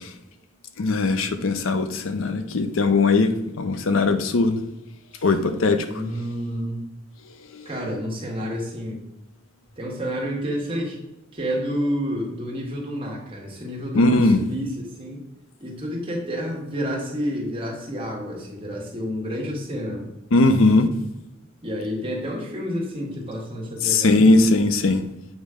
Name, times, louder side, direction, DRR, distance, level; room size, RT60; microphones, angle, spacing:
voice 1, 0.8-4.6 5.2-5.9 7.5-7.7 13.9-14.4 20.3-20.9 23.8-25.0, left 3 dB, 75° left, 8 dB, 0.6 m, -19 dB
voice 2, 5.9-6.8 7.6-9.0 9.8-11.0 11.3-15.2 15.6-20.1 21.6-24.3, equal, 25° right, -2 dB, 1.5 m, -29 dB
7.4 x 3.1 x 4.9 m, 0.92 s
head